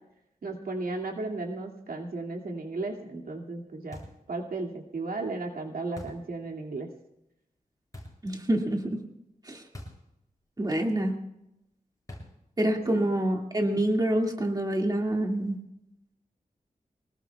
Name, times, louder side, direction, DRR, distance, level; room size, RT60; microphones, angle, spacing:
voice 1, 0.4-6.9 12.9-13.1, right 3 dB, 85° right, 0 dB, 2.4 m, -35 dB
sound 1, 3.9-4.3 6.0-6.3 7.9-8.3 9.7-10.1 10.4-10.5 12.1-12.5, left 1 dB, 25° left, 7.4 m, -44 dB
voice 2, 8.2-9.0 9.5-9.6 10.6-11.1 12.6-15.6, right 1 dB, 25° right, 1 dB, 2.2 m, -26 dB
25.0 x 19.5 x 2.4 m, 0.84 s
wide cardioid pair, 110°, 15 cm